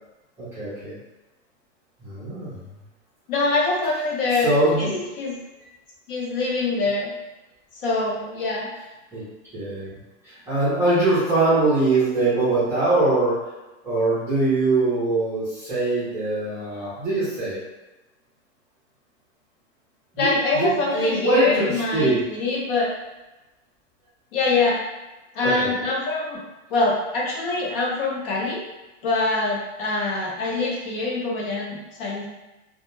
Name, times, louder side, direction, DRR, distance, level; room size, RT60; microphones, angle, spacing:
voice 1, 0.4-0.9 2.0-2.6 4.4-5.1 9.1-9.2 9.5-9.9 10.5-13.4 13.8-17.6 20.1-22.2 25.4-25.7, right 2 dB, 10° right, -12 dB, 0.5 m, -22 dB
voice 2, 3.3-4.5 5.2-5.4 6.1-7.1 7.8-8.7 20.2-22.9 24.3-24.8 25.3-26.4 26.7-28.6 29.0-32.3, left 3 dB, 50° left, -3 dB, 0.6 m, -24 dB
2.2 x 2.1 x 2.9 m, 1.1 s
supercardioid pair, 165°, 37 cm